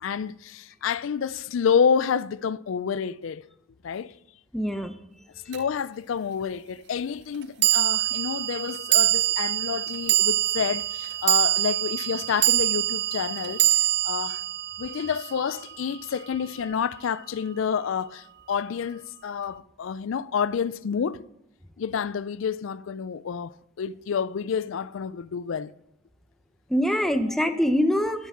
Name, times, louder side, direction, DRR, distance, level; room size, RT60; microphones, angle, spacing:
voice 1, 0.0-3.4 3.8-4.2 5.5-14.4 14.8-21.2 21.8-25.7, left 7 dB, 75° left, 0.4 m, -29 dB
voice 2, 4.5-5.0 26.7-28.3, equal, ahead, 0.7 m, -24 dB
sound 1, 5.5-5.6 7.6-16.0, right 15 dB, 55° right, 0.4 m, -24 dB
12.5 x 7.2 x 3.6 m
head